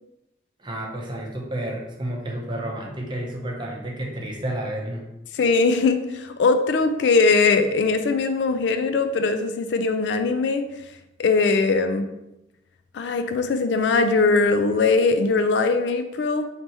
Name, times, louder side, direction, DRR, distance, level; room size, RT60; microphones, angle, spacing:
voice 1, 0.6-5.0, right 1 dB, 25° right, -1 dB, 0.7 m, -31 dB
voice 2, 5.3-10.7 11.2-12.0 12.9-16.5, left 4 dB, 70° left, 8 dB, 0.4 m, -21 dB
4.2 x 3.3 x 2.9 m, 0.92 s
head